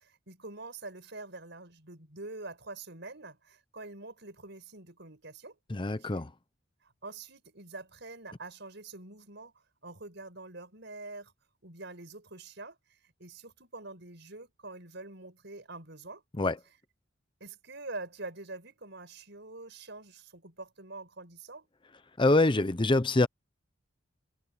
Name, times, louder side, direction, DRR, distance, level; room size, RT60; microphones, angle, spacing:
voice 1, 0.0-5.6 6.0-6.2 6.8-9.5 9.8-11.3 11.6-16.2 17.4-21.7, right 2 dB, 60° right, 6.7 m, -45 dB
voice 2, 5.7-6.3 16.4-16.6 22.2-23.3, left 2 dB, 25° left, 0.7 m, -25 dB
head